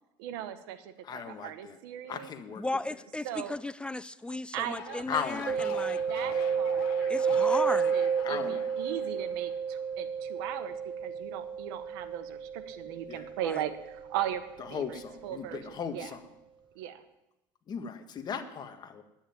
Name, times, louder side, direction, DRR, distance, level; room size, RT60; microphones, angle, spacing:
voice 1, 0.2-2.3 3.2-3.5 4.5-5.7 6.1-16.1 16.7-17.0, right 11 dB, 85° right, 9 dB, 1.3 m, -39 dB
voice 2, 1.1-1.7 2.1-2.6 5.1-5.9 8.2-8.6 13.1-13.3 14.7-16.2 17.7-19.0, left 7 dB, 35° left, 6 dB, 1.5 m, -37 dB
voice 3, 2.6-6.0 7.1-7.9 13.4-13.6, left 2 dB, 10° left, 17 dB, 0.4 m, -35 dB
sound 1, 4.6-9.9, left 11 dB, 80° left, 1.0 m, -45 dB
Mallet percussion, 5.5-15.0, right 6 dB, 40° right, 0.8 m, -31 dB
10.0 x 8.8 x 9.3 m, 0.92 s
supercardioid pair, 115°, 12 cm